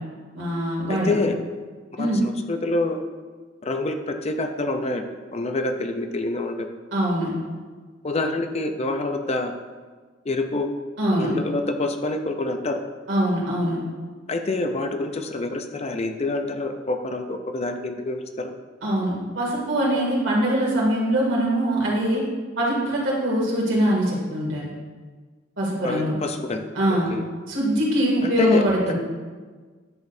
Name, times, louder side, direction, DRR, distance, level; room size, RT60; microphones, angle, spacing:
voice 1, 0.3-1.1 2.0-2.2 6.9-7.3 11.0-11.3 13.1-13.8 18.8-22.2 22.6-24.7 25.6-26.1 26.7-27.1 27.5-28.9, right 1 dB, 85° right, -4 dB, 2.5 m, -23 dB
voice 2, 0.9-1.3 1.9-2.1 2.5-3.0 3.6-6.7 8.0-9.5 10.3-10.7 11.2-12.8 14.3-18.5 25.8-26.6 26.9-27.3 28.2-28.6, left 2 dB, 35° left, 6 dB, 0.5 m, -26 dB
10.5 x 6.2 x 2.7 m, 1.4 s
head